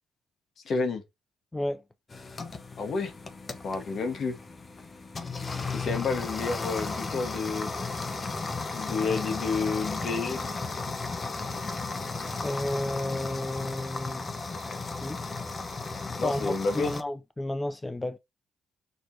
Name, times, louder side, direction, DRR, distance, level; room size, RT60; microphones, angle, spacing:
voice 1, 0.6-1.0 2.8-3.1 3.6-4.3 5.7-7.7 8.7-10.4 16.2-16.9, left 4 dB, 60° left, 1.4 m, -30 dB
voice 2, 1.5-1.8 12.4-14.6 15.0-15.2 16.2-18.2, left 1 dB, 15° left, 0.4 m, -32 dB
sound 1, 2.1-17.0, left 3 dB, 35° left, 1.0 m, -35 dB
6.4 x 3.0 x 2.8 m
cardioid pair, 80°, 0 cm